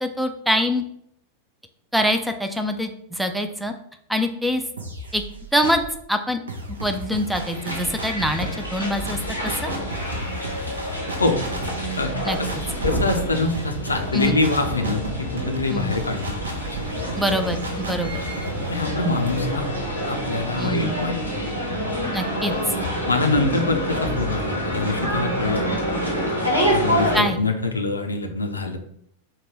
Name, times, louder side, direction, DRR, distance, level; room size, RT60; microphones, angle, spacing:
voice 1, 0.0-0.8 1.9-3.7 4.1-4.6 5.1-5.2 5.5-5.8 6.1-6.4 6.8-9.2 9.6-9.7 12.2-12.6 14.1-14.4 15.7-16.0 17.2-18.2 20.6-21.0 22.1-22.5 27.1-27.4, equal, ahead, 7 dB, 0.4 m, -24 dB
sound 1, 4.8-6.0 6.5-20.2, right 1 dB, 70° right, 0.6 m, -34 dB
sound 2, 7.4-27.2, equal, 90° right, 1.1 m, -27 dB
voice 2, 12.0-12.5 12.8-16.3 18.7-19.7 20.1-21.2 23.1-25.7 26.7-28.8, left 3 dB, 80° left, 5 dB, 0.5 m, -24 dB
3.8 x 2.2 x 4.5 m, 0.69 s
figure-of-eight pair, 90°, 0 cm